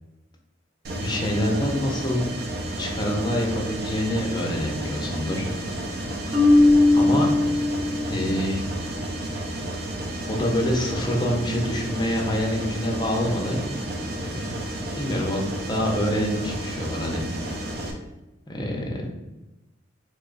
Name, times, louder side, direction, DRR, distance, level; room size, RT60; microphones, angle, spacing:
Mechanisms, 0.8-17.9, right 1 dB, 50° right, 0.5 m, -32 dB
voice 1, 0.9-2.3 2.8-5.5 6.9-7.3 8.1-8.6 10.3-13.7 14.2-14.6 15.0-17.7 18.5-19.1, equal, 20° left, 0 dB, 0.6 m, -26 dB
Marimba xylophone, 6.3-8.4, left 2 dB, 20° right, 1.1 m, -18 dB
2.9 x 2.3 x 3.8 m, 1.0 s
head